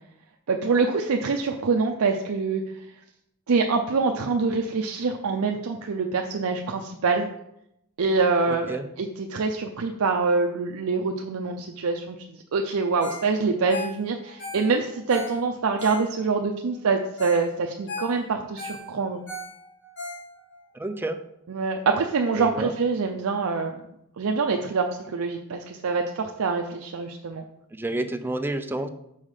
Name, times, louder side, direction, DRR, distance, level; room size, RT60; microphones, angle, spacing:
voice 1, 0.5-2.6 3.5-7.3 8.0-19.2 21.5-23.8 24.2-27.4, right 4 dB, 75° right, 3 dB, 0.5 m, -25 dB
voice 2, 8.5-8.9 20.7-21.2 22.3-22.7 27.7-28.9, right 1 dB, 10° right, 8 dB, 0.4 m, -29 dB
Ringtone, 13.0-13.3 13.5-16.4 16.9-17.0 17.2-17.5 17.7-20.6 21.0-21.1, left 1 dB, 55° left, 1.8 m, -37 dB
5.6 x 5.2 x 4.9 m, 0.81 s
head